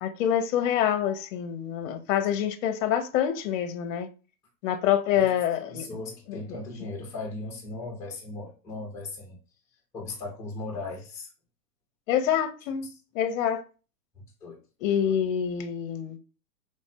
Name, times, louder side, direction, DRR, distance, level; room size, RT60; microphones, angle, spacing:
voice 1, 0.0-4.1 4.6-5.9 6.3-6.4 12.1-12.9 13.1-13.6 14.8-16.2, left 9 dB, 55° left, 0.6 m, -26 dB
voice 2, 5.7-9.4 9.9-11.3 14.1-14.6, left 2 dB, 5° left, 0.5 m, -37 dB
3.4 x 2.1 x 2.6 m
hypercardioid pair, 135°, 49 cm